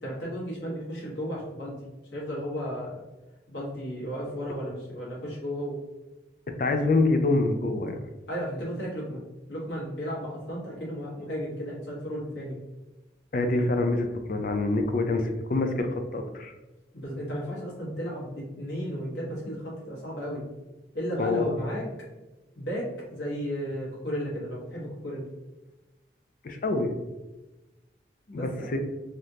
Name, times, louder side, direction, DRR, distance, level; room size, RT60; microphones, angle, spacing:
voice 1, 0.0-1.8 2.1-3.0 3.5-5.8 8.3-9.2 9.5-12.6 16.9-20.4 20.9-21.8 22.5-25.3 28.3-28.7, equal, 80° left, -5 dB, 1.3 m, -34 dB
voice 2, 6.6-8.0 13.3-16.5 21.2-21.6 26.4-26.9 28.3-28.8, left 2 dB, 50° left, 6 dB, 0.4 m, -26 dB
3.5 x 2.4 x 2.7 m, 1.1 s
head